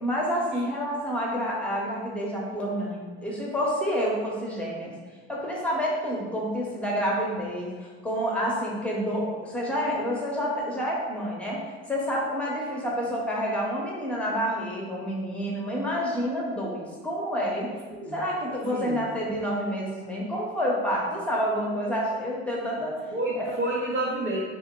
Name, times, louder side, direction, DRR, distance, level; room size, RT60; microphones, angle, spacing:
voice 1, 0.0-4.9 5.3-17.7 18.1-23.0 23.3-23.4, equal, 5° left, -3 dB, 1.0 m, -28 dB
voice 2, 23.1-24.4, right 1 dB, 35° right, -4 dB, 0.7 m, -29 dB
3.3 x 2.2 x 3.7 m, 1.4 s
hypercardioid pair, 70°, 32 cm